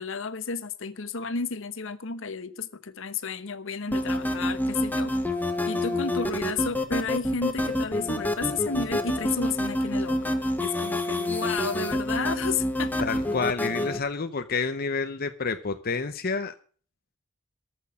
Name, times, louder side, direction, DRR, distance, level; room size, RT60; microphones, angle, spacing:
voice 1, 0.0-5.1 5.7-10.3 10.6-12.9, left 5 dB, 65° left, 13 dB, 1.0 m, -32 dB
sound 1, 3.9-14.0, left 1 dB, 10° left, 1.5 m, -27 dB
voice 2, 13.0-16.5, left 4 dB, 45° left, 8 dB, 0.8 m, -29 dB
14.5 x 6.4 x 9.8 m, 0.44 s
head